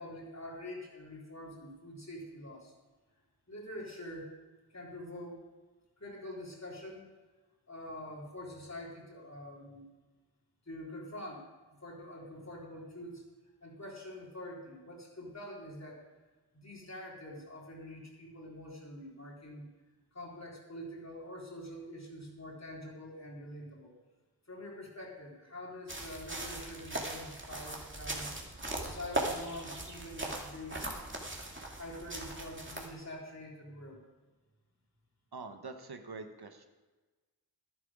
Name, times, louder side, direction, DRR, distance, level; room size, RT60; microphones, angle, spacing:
voice 1, 0.0-2.7 3.5-4.3 4.7-5.4 6.0-7.1 7.7-9.9 10.7-11.5 11.8-13.3 13.6-16.1 16.5-19.7 20.1-23.9 24.5-28.4 28.8-30.9 31.8-34.0, left 1 dB, 40° left, -3 dB, 3.6 m, -45 dB
sound 1, 25.9-32.9, right 2 dB, 30° right, 2.2 m, -39 dB
voice 2, 35.3-36.6, right 4 dB, 65° right, 6 dB, 1.2 m, -45 dB
11.0 x 11.0 x 4.9 m, 1.2 s
wide cardioid pair, 55°, 41 cm